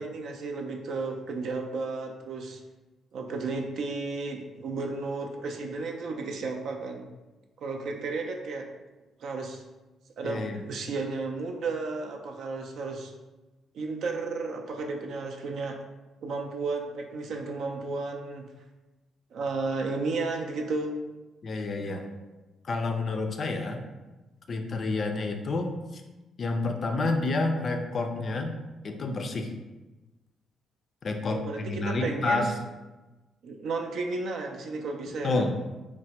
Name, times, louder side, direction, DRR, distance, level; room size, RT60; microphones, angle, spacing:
voice 1, 0.0-2.6 3.1-7.0 7.6-8.7 9.2-9.6 10.2-13.1 13.7-15.8 16.2-18.5 19.3-21.0 31.3-32.5 33.4-35.5, right 3 dB, 70° right, 2 dB, 0.3 m, -33 dB
voice 2, 10.2-10.6 21.4-22.1 22.6-23.8 24.5-26.0 26.4-28.6 28.8-29.5 31.0-32.5 35.2-35.6, left 3 dB, 45° left, 5 dB, 0.4 m, -29 dB
3.2 x 2.1 x 2.8 m, 1.1 s
cardioid pair, 90°, 0 cm